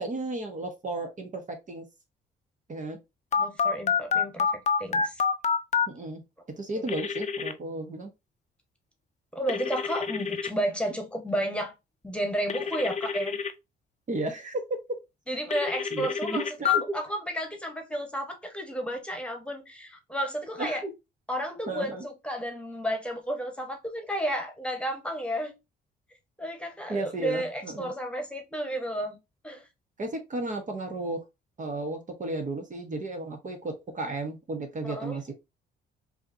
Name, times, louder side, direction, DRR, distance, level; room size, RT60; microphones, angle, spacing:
voice 1, 0.0-1.9 2.7-3.0 5.9-6.2 6.6-8.1 10.8-10.9 14.1-14.6 15.9-17.0 20.6-20.9 21.7-22.0 26.9-27.9 30.0-31.2 31.6-35.3, right 2 dB, 40° right, 1.1 m, -34 dB
Telephone, 3.3-5.9 6.9-7.5 9.5-10.5 12.5-13.5 15.5-16.8, left 6 dB, 35° left, 0.6 m, -27 dB
voice 2, 3.4-5.2 6.8-6.9 9.3-11.7 12.0-13.4 15.3-20.8 21.3-25.5 26.4-29.2 29.4-29.6 34.8-35.2, equal, 5° left, 1.4 m, -32 dB
4.7 x 2.8 x 2.8 m
cardioid pair, 90°, 20 cm